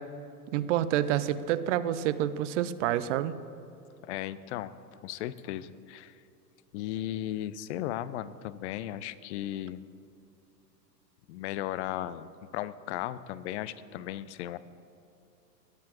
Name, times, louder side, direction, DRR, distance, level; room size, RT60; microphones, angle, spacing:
voice 1, 0.5-3.3, right 11 dB, 50° right, 15 dB, 0.5 m, -28 dB
voice 2, 4.0-4.7 5.0-6.1 6.7-9.8 11.3-12.3 12.5-14.6, left 12 dB, 45° left, 17 dB, 0.5 m, -36 dB
18.5 x 7.5 x 2.9 m, 2.7 s
figure-of-eight pair, 90°, 49 cm